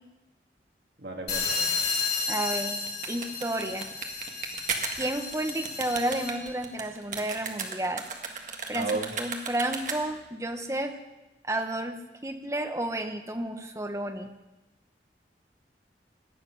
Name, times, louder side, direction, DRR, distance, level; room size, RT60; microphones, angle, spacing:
voice 1, 1.0-1.7 8.7-9.1, right 3 dB, 70° right, 1 dB, 2.3 m, -33 dB
sound 1, 1.3-6.5, left 4 dB, 60° left, 3.9 m, -32 dB
voice 2, 2.3-3.9 5.0-8.0 8.7-8.9 9.2-11.0 11.4-14.3, right 1 dB, 15° right, 6 dB, 1.0 m, -31 dB
sound 2, 2.4-10.3, right 5 dB, 45° right, 1.8 m, -36 dB
18.0 x 11.5 x 6.2 m, 1.0 s
head